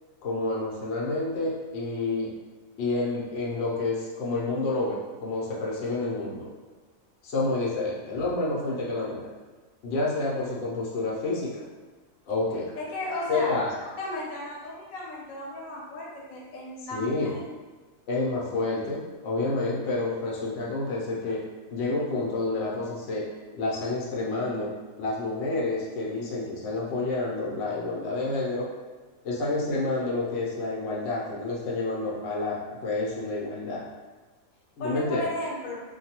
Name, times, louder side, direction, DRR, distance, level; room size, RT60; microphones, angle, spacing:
voice 1, 0.2-2.3 2.8-6.5 7.2-9.3 9.8-11.6 12.3-12.7 13.3-13.7 16.9-17.4 18.1-21.4 21.7-23.3 23.5-24.7 25.0-28.7 29.2-33.8 34.8-35.2, left 2 dB, 60° left, -5 dB, 0.8 m, -29 dB
voice 2, 12.8-13.7 14.0-17.4 34.8-35.8, left 1 dB, 80° left, -4 dB, 1.1 m, -34 dB
2.6 x 2.2 x 2.8 m, 1.3 s
omnidirectional pair, 1.4 m